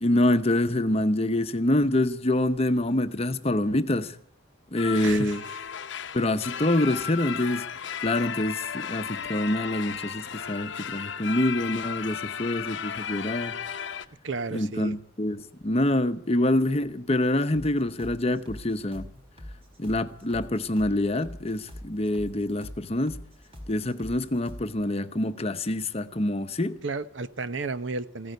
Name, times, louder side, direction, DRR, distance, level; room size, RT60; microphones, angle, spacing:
voice 1, 0.0-4.2 4.7-5.4 6.1-7.7 8.0-13.5 14.5-19.1 19.8-23.2 23.7-26.8, left 1 dB, 30° left, 0.8 m, -26 dB
sound 1, 4.8-14.1, left 7 dB, 60° left, 0.8 m, -35 dB
voice 2, 5.0-5.4 14.2-14.9 26.8-28.3, right 3 dB, 60° right, 0.8 m, -32 dB
sound 2, 17.5-24.8, equal, 30° right, 4.6 m, -43 dB
15.5 x 9.7 x 9.2 m
head